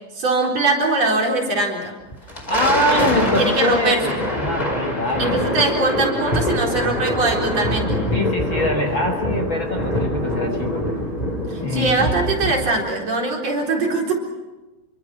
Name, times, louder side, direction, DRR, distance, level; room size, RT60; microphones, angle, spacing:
voice 1, 0.2-1.9 2.9-3.0 3.4-4.0 5.2-8.0 11.5-14.1, right 3 dB, 50° right, -1 dB, 5.2 m, -21 dB
Thunder, 2.1-12.9, equal, 10° left, 4.4 m, -24 dB
voice 2, 2.2-5.4 8.1-10.8 11.6-12.1, left 1 dB, 45° left, 4 dB, 2.0 m, -24 dB
28.0 x 24.0 x 6.2 m, 1.1 s
omnidirectional pair, 3.8 m